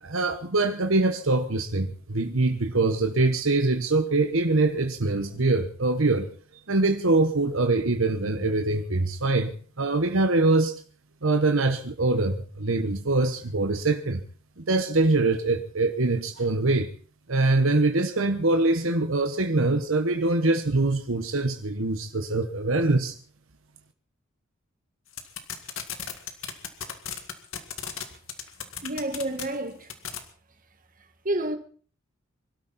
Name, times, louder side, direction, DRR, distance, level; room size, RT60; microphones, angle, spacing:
voice 1, 0.0-6.3 6.7-9.5 9.8-10.7 11.2-14.2 14.6-16.9 17.3-23.2, right 2 dB, 70° right, 1.2 m, -23 dB
sound 1, 25.1-28.0 28.3-29.4 29.9-30.2, left 9 dB, 70° left, 2.1 m, -33 dB
voice 2, 28.8-29.9 31.3-31.6, right 1 dB, 40° right, 1.9 m, -29 dB
24.5 x 13.0 x 4.2 m
head